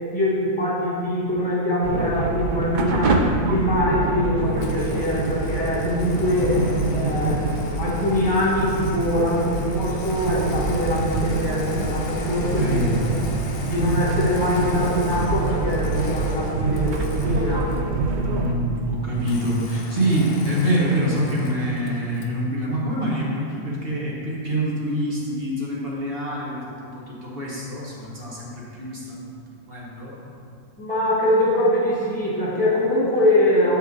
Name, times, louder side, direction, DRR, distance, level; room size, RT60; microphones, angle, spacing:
voice 1, 0.0-6.6 6.8-13.1 13.6-17.0 17.2-17.7 30.8-33.8, left 1 dB, 5° left, -9 dB, 1.6 m, -23 dB
sound 1, 1.8-18.5, right 3 dB, 75° right, 0.4 m, -25 dB
Engine starting, 4.5-17.9 19.2-22.4, left 3 dB, 80° left, 1.2 m, -39 dB
voice 2, 12.5-12.9 18.2-29.3 29.7-30.2, equal, 40° right, -6 dB, 1.5 m, -25 dB
7.0 x 5.8 x 3.9 m, 2.5 s
omnidirectional pair, 1.5 m